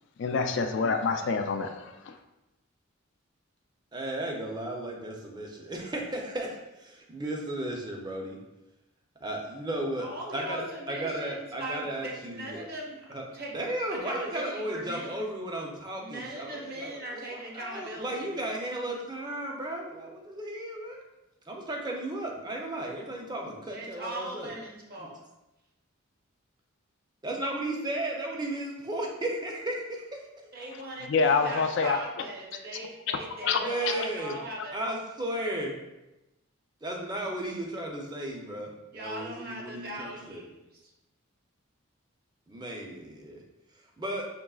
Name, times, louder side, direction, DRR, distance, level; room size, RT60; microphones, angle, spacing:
voice 1, 0.2-2.2 31.0-32.0 33.4-34.1, left 4 dB, 55° left, 6 dB, 0.3 m, -27 dB
voice 2, 3.9-8.4 9.2-10.1 10.3-12.7 13.1-13.2 13.5-21.0 21.5-24.5 25.0-25.1 27.2-30.2 33.6-34.4 34.7-35.8 36.8-40.4 42.5-43.4 44.0-44.3, right 1 dB, 20° right, 0 dB, 0.5 m, -35 dB
voice 3, 10.0-13.6 13.9-15.2 16.0-18.3 23.7-25.2 30.5-34.8 38.9-40.9, right 1 dB, 45° right, -2 dB, 0.9 m, -39 dB
6.0 x 3.0 x 2.3 m, 0.99 s
head